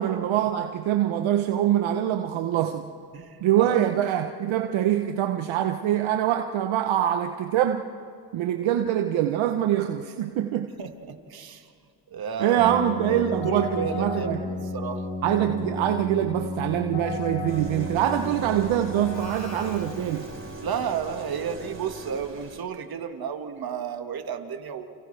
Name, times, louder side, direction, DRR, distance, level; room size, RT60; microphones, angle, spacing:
voice 1, 0.0-2.9 3.4-7.8 8.3-10.7 12.4-14.4 15.2-20.3, right 11 dB, 65° right, 1.1 m, -24 dB
voice 2, 3.1-3.9 10.8-11.7 12.1-15.0 20.6-24.9, right 7 dB, 45° right, 2.0 m, -32 dB
Keyboard (musical), 12.5-20.6, left 3 dB, 65° left, 6.8 m, -33 dB
sound 1, 17.4-22.6, right 2 dB, 25° right, 4.4 m, -41 dB
29.5 x 29.0 x 3.4 m
supercardioid pair, 75°, 49 cm